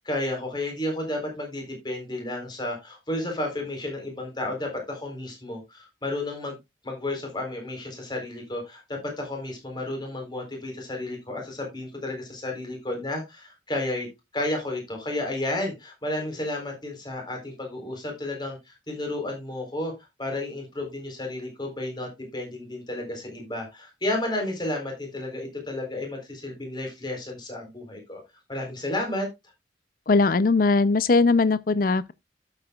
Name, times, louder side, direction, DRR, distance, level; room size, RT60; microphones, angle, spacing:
voice 1, 0.0-6.6 6.8-14.1 14.3-19.9 20.2-28.2 28.5-29.3, left 1 dB, 25° left, 3.9 m, -32 dB
voice 2, 30.1-32.1, left 3 dB, 50° left, 0.5 m, -20 dB
12.0 x 8.1 x 2.3 m
head